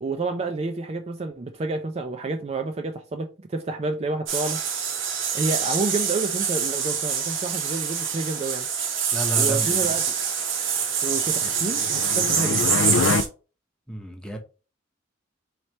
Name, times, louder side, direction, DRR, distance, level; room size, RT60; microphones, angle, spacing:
voice 1, 0.0-4.6 5.3-8.7 9.4-10.0 11.0-12.7, right 3 dB, 30° right, 0.4 m, -29 dB
sound 1, 4.3-13.3, right 7 dB, 70° right, 1.0 m, -25 dB
voice 2, 9.1-9.9 13.9-14.4, equal, 5° left, 0.7 m, -31 dB
sound 2, 11.3-13.2, left 4 dB, 70° left, 0.4 m, -26 dB
4.2 x 3.2 x 2.8 m
head